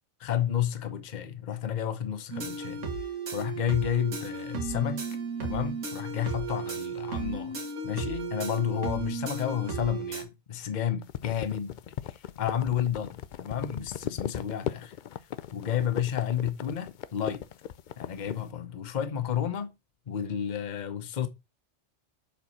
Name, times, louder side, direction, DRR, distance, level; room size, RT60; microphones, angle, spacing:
voice 1, 0.2-2.8 3.3-5.0 5.4-7.6 7.8-11.8 12.0-15.0 15.5-17.4 18.0-19.7 20.1-21.3, left 9 dB, 40° left, 0.9 m, -31 dB
sound 1, 2.3-10.2, right 4 dB, 90° right, 1.9 m, -34 dB
sound 2, 11.0-18.4, left 10 dB, 60° left, 0.5 m, -37 dB
7.1 x 4.7 x 4.1 m
omnidirectional pair, 1.2 m